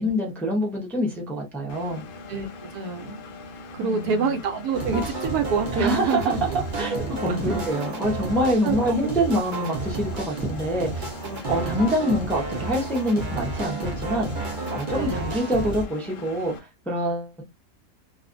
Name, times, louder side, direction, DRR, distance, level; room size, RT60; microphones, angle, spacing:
voice 1, 0.0-2.0 3.8-4.3 5.7-11.1 11.5-17.4, equal, ahead, 0.5 m, -26 dB
Engine, 1.7-16.6, left 3 dB, 75° left, 0.5 m, -42 dB
voice 2, 2.7-3.2 3.7-6.4 7.3-7.6 8.6-9.0 11.2-12.1 14.9-15.3, right 5 dB, 90° right, 1.1 m, -27 dB
sound 1, 4.7-15.9, right 2 dB, 55° right, 0.6 m, -31 dB
2.5 x 2.4 x 2.5 m
omnidirectional pair, 1.6 m